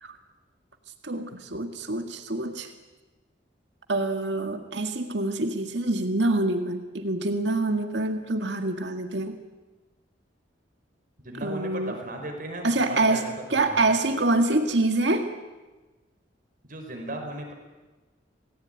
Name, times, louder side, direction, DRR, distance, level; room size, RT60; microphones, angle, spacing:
voice 1, 1.0-2.7 3.9-9.4 11.4-12.0 12.6-15.3, right 2 dB, 70° right, 6 dB, 2.0 m, -26 dB
voice 2, 11.2-13.9 16.7-17.5, right 1 dB, 50° right, 3 dB, 5.3 m, -36 dB
27.5 x 18.5 x 9.3 m, 1.2 s
head